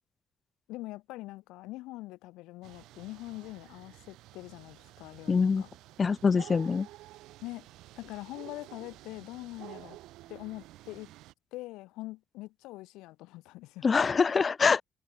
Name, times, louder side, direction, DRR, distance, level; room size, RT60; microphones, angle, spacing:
voice 1, 0.7-5.7 7.4-7.7 8.0-10.0 10.3-11.1 11.5-13.9, left 19 dB, 90° left, 5.7 m, -43 dB
sound 1, 2.6-11.3, right 16 dB, 85° right, 5.3 m, -51 dB
voice 2, 5.3-5.6 6.0-6.9 13.8-14.8, left 5 dB, 40° left, 0.3 m, -24 dB
open air
cardioid pair, 80°, 0 cm